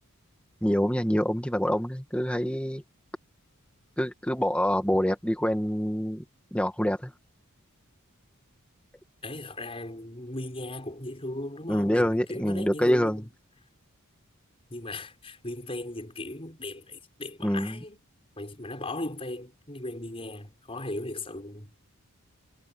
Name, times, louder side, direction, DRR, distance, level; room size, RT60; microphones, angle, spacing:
voice 1, 0.6-2.8 4.0-6.2 6.5-7.1 11.7-13.2 17.4-17.8, equal, 5° left, 2.0 m, -26 dB
voice 2, 9.2-13.3 14.7-18.0 18.4-21.7, left 1 dB, 25° left, 5.9 m, -37 dB
head